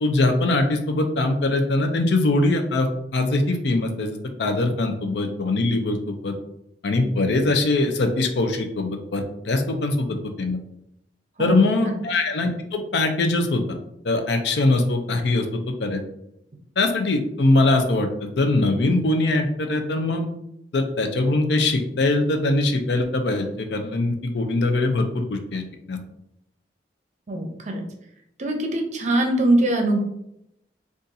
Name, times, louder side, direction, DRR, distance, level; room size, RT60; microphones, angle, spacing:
voice 1, 0.0-2.9 3.1-6.0 6.2-6.3 6.8-10.1 10.4-10.6 11.4-13.6 14.0-15.5 15.8-16.0 16.8-20.3 20.7-25.6 25.9-26.0, left 2 dB, 70° left, 5 dB, 0.5 m, -22 dB
voice 2, 27.3-27.8 28.4-30.0, right 1 dB, 40° right, 3 dB, 0.6 m, -22 dB
2.7 x 2.5 x 3.8 m, 0.79 s
head